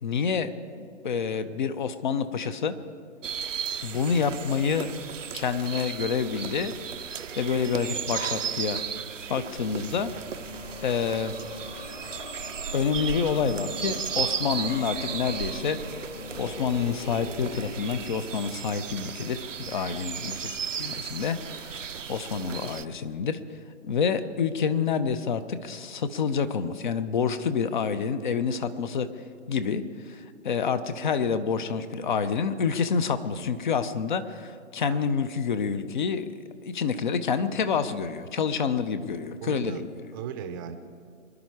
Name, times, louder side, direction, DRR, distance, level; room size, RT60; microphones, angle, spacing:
voice 1, 0.0-0.5 0.8-2.7 3.8-4.9 5.3-6.7 7.4-8.8 9.3-10.1 10.8-11.3 12.7-15.8 16.4-23.4 23.8-29.1 29.5-36.3 36.6-39.9, left 6 dB, 40° left, 12 dB, 0.9 m, -28 dB
sound 1, 3.2-22.8, right 7 dB, 80° right, 0.7 m, -35 dB
sound 2, 9.7-18.7, left 2 dB, 65° left, 2.2 m, -42 dB
voice 2, 39.4-40.8, right 8 dB, 15° right, 8 dB, 0.7 m, -38 dB
25.0 x 11.0 x 4.9 m, 2.3 s
figure-of-eight pair, 140°, 37 cm